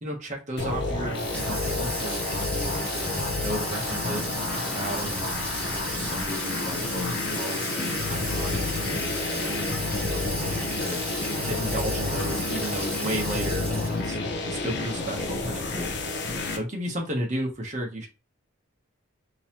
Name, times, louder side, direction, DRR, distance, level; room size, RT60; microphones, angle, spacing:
voice 1, 0.0-9.7 10.0-11.1 11.4-14.2 14.4-18.1, right 1 dB, 35° right, -1 dB, 0.9 m, -34 dB
sound 1, 0.6-16.6, left 2 dB, 50° left, 0.6 m, -30 dB
Water tap faucet / Sink (filling or washing), 1.1-14.3, equal, 5° left, 1.0 m, -34 dB
3.8 x 2.9 x 2.9 m, 0.29 s
head